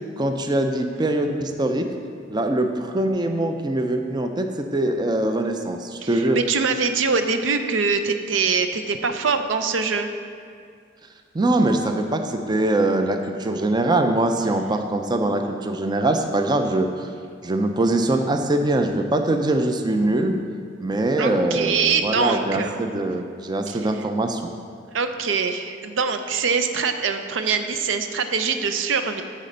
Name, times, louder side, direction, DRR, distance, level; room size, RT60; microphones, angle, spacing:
voice 1, 0.2-1.9 2.3-6.4 11.3-16.9 17.4-20.4 20.8-24.5, right 1 dB, 20° right, 5 dB, 0.4 m, -22 dB
voice 2, 6.0-10.1 21.2-22.8 23.7-23.8 24.9-29.2, right 5 dB, 75° right, 8 dB, 0.5 m, -23 dB
8.9 x 4.2 x 6.6 m, 2.3 s
head